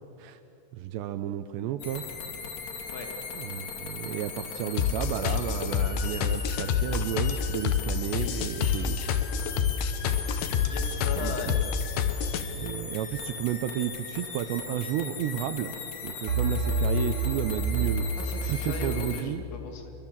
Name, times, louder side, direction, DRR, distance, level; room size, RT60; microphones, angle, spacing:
voice 1, 0.7-2.0 3.3-9.0 11.2-11.3 12.5-15.7 16.0-18.1 18.5-19.4, right 12 dB, 80° right, 9 dB, 2.6 m, -32 dB
sound 1, 1.8-19.2, left 6 dB, 50° left, 2.2 m, -39 dB
sound 2, 4.8-12.4, left 8 dB, 70° left, 2.5 m, -27 dB
sound 3, 8.9-9.8 16.3-19.3, right 2 dB, 40° right, 6.3 m, -29 dB
voice 2, 10.6-11.7 12.2-12.5 18.2-19.9, left 4 dB, 90° left, 5 dB, 5.0 m, -38 dB
25.0 x 24.0 x 7.4 m, 3.0 s
omnidirectional pair, 5.7 m